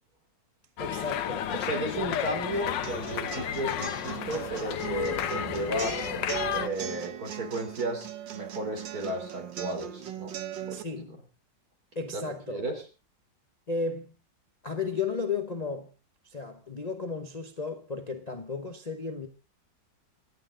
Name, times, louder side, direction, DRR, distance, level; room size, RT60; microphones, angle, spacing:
sound 1, 0.8-6.7, left 10 dB, 85° left, 1.6 m, -32 dB
voice 1, 0.8-1.5 1.9-2.1 10.7-11.2 11.9-12.7 13.7-14.1 14.6-15.9 16.2-19.3, left 4 dB, 30° left, 0.9 m, -34 dB
voice 2, 1.5-6.0 6.5-10.3 10.7-10.8 12.1-12.8, right 1 dB, 55° right, 4.0 m, -34 dB
sound 2, 2.8-10.8, right 11 dB, 85° right, 1.9 m, -39 dB
26.0 x 9.0 x 3.8 m
omnidirectional pair, 1.9 m